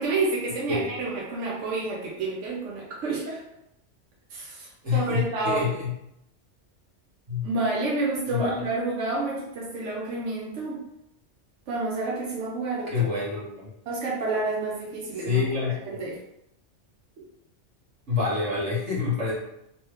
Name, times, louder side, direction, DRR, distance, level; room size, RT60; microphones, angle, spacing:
voice 1, 0.0-3.4 4.3-5.7 7.4-10.8 11.7-13.1 13.9-15.4 15.9-16.2 17.2-17.3, right 3 dB, 90° right, -3 dB, 1.0 m, -29 dB
voice 2, 4.8-5.9 7.3-7.4 8.2-8.6 12.9-13.6 15.2-15.8 18.1-19.3, left 5 dB, 70° right, -7 dB, 1.7 m, -26 dB
3.2 x 3.0 x 3.1 m, 0.81 s
omnidirectional pair, 1.2 m